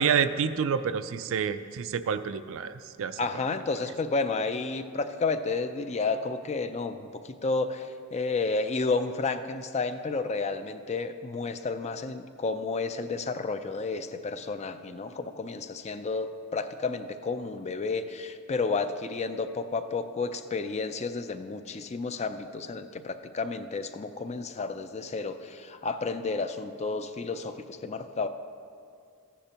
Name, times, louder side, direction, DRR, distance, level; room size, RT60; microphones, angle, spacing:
voice 1, 0.0-3.2, right 7 dB, 60° right, 12 dB, 0.4 m, -28 dB
voice 2, 3.2-28.3, left 4 dB, 30° left, 9 dB, 0.4 m, -31 dB
14.5 x 10.0 x 2.9 m, 2.2 s
head